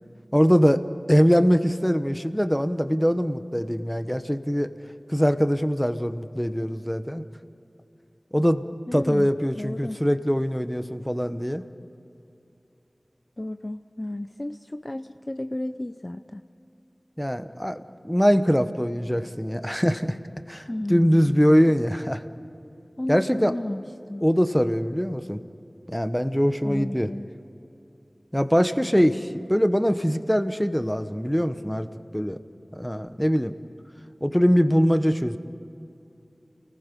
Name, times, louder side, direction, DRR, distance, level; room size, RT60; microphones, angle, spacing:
voice 1, 0.3-0.8 1.1-4.7 5.1-7.2 8.3-11.6 17.2-20.2 20.5-22.2 23.1-23.5 24.2-25.4 25.9-27.1 28.3-29.2 29.5-31.9 32.1-32.4 32.7-33.5 34.2-35.4, equal, 5° left, 10 dB, 1.1 m, -22 dB
voice 2, 8.9-10.0 13.4-16.4 20.7-21.3 23.0-24.2 26.6-27.3 28.9-29.2, left 1 dB, 35° left, 9 dB, 0.6 m, -33 dB
29.5 x 20.0 x 5.4 m, 2.8 s
wide cardioid pair, 40°, 0 cm